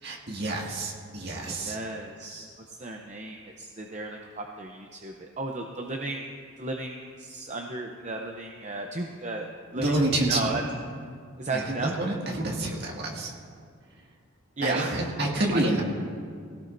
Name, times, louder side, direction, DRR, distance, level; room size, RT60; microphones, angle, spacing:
voice 1, 0.0-1.8 9.8-10.6 11.5-13.3 14.6-15.8, right 2 dB, 50° right, -2 dB, 2.1 m, -28 dB
voice 2, 1.5-6.3 6.6-9.9 10.3-10.6 11.4-12.0 14.6-15.8, right 2 dB, 35° right, 2 dB, 0.7 m, -34 dB
19.5 x 17.0 x 2.6 m, 2.1 s
head